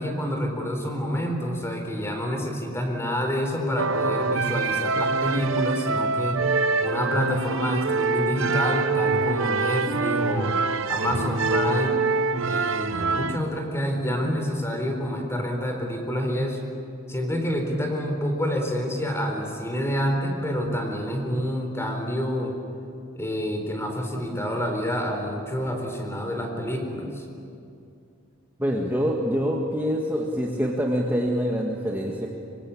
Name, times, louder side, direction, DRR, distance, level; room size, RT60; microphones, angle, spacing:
voice 1, 0.0-6.4 6.8-10.5 10.9-12.0 12.5-16.6 17.1-22.6 23.1-27.2, equal, 15° left, 3 dB, 4.3 m, -28 dB
sound 1, 3.8-13.4, right 3 dB, 70° right, 1.0 m, -25 dB
voice 2, 28.6-32.3, equal, 10° right, -2 dB, 1.9 m, -25 dB
25.0 x 24.5 x 8.7 m, 2.5 s
head